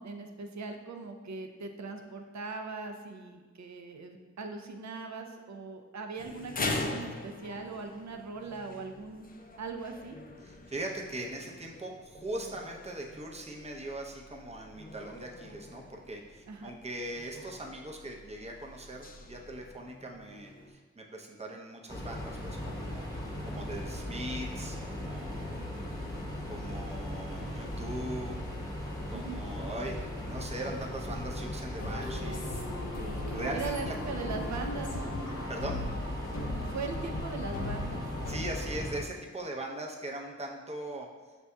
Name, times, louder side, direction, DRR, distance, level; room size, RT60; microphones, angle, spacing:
voice 1, 0.0-9.3 9.6-10.2 16.5-16.7 25.6-25.9 29.1-29.4 33.5-35.1 36.6-38.0, right 4 dB, 65° right, 5 dB, 0.5 m, -40 dB
sound 1, 6.2-20.7, left 2 dB, 30° left, 0.4 m, -43 dB
voice 2, 10.4-25.6 26.5-28.4 29.1-32.6 33.3-33.9 35.5-35.8 38.3-41.1, right 1 dB, 20° right, 1 dB, 0.6 m, -40 dB
sound 2, 21.9-39.0, left 1 dB, 10° left, 0.9 m, -38 dB
sound 3, 31.8-38.4, left 1 dB, 75° left, 0.7 m, -39 dB
5.9 x 2.7 x 2.2 m, 1.3 s
cardioid pair, 45°, 30 cm